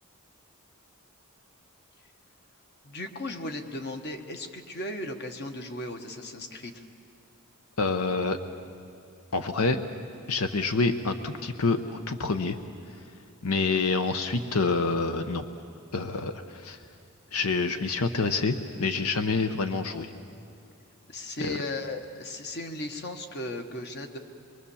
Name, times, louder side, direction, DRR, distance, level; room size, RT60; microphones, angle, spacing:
voice 1, 2.8-6.8 21.1-24.2, left 1 dB, 50° left, 5 dB, 1.3 m, -36 dB
voice 2, 7.8-8.4 9.3-9.8 10.3-12.6 13.4-15.4 15.9-16.8 17.3-20.1 21.4-21.6, left 3 dB, 75° left, 8 dB, 0.9 m, -27 dB
23.5 x 22.5 x 7.1 m, 2.4 s
head